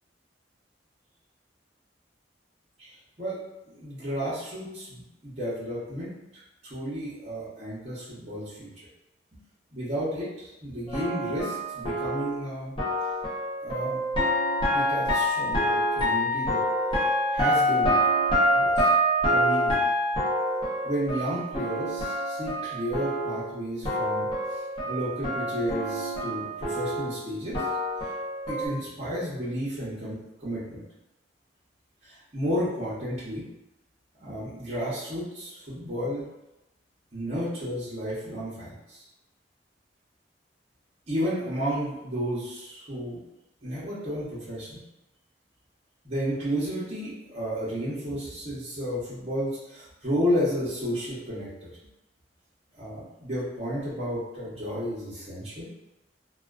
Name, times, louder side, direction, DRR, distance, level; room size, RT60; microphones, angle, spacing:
voice 1, 3.7-6.1 6.6-8.7 9.7-12.7 13.6-14.0 14.7-16.6 17.3-18.0 18.5-18.9 19.3-19.8 20.8-24.3 24.9-27.6 28.5-30.8 32.0-33.4 34.2-36.3 37.1-39.0 41.1-43.2 43.6-44.8 46.0-51.7 52.8-55.7, equal, 35° right, -10 dB, 0.7 m, -32 dB
sound 1, 10.9-23.6 23.8-28.7, equal, 30° left, 0.6 m, -26 dB
2.3 x 2.2 x 2.3 m, 0.94 s
head